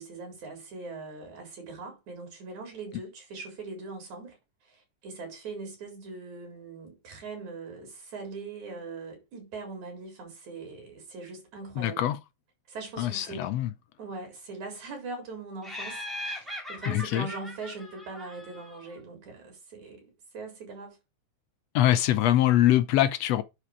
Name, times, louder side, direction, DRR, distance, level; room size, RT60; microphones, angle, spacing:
voice 1, 0.0-4.4 4.6-12.0 12.7-13.5 14.0-21.0, right 3 dB, 70° right, 5.2 m, -41 dB
voice 2, 11.8-12.2 13.0-13.7 16.9-17.3 21.7-23.4, left 13 dB, 75° left, 1.6 m, -23 dB
Laughter, 15.6-18.9, left 1 dB, ahead, 2.5 m, -39 dB
9.8 x 5.0 x 4.8 m
omnidirectional pair, 3.5 m